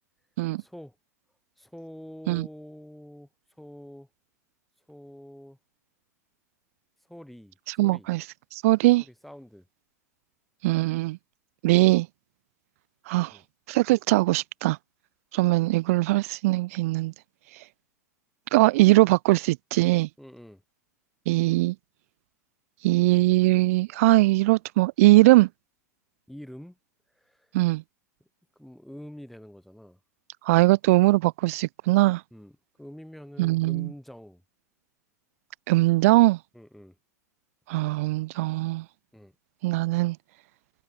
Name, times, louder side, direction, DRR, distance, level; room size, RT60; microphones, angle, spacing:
voice 1, 0.6-1.0 1.6-3.3 3.6-4.1 4.9-5.6 7.1-8.1 9.0-9.7 13.3-13.4 20.2-20.6 26.3-26.8 27.1-27.5 28.2-28.3 28.6-30.0 32.3-34.4 36.5-37.0 39.1-39.3, equal, ahead, 2.8 m, -46 dB
voice 2, 7.8-8.2 8.5-9.0 10.6-11.2 11.6-12.1 13.1-13.3 13.7-14.8 15.3-17.1 18.5-20.1 21.3-21.7 22.8-25.5 27.5-27.8 30.5-32.2 33.4-33.9 35.7-36.4 37.7-38.8 39.6-40.2, right 20 dB, 55° right, 0.3 m, -21 dB
hypercardioid pair, 95°, 9 cm